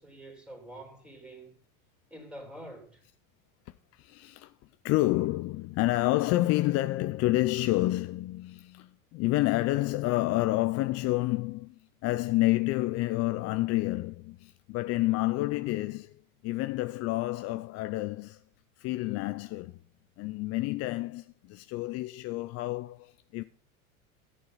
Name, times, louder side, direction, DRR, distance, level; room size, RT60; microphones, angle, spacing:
voice 1, 0.0-1.5 2.1-3.0, right 1 dB, ahead, 3.4 m, -46 dB
voice 2, 3.9-4.5 4.8-11.8 12.0-18.4 18.8-19.8 20.2-23.4, left 18 dB, 35° left, 0.5 m, -29 dB
13.0 x 8.6 x 4.0 m
hypercardioid pair, 105°, 44 cm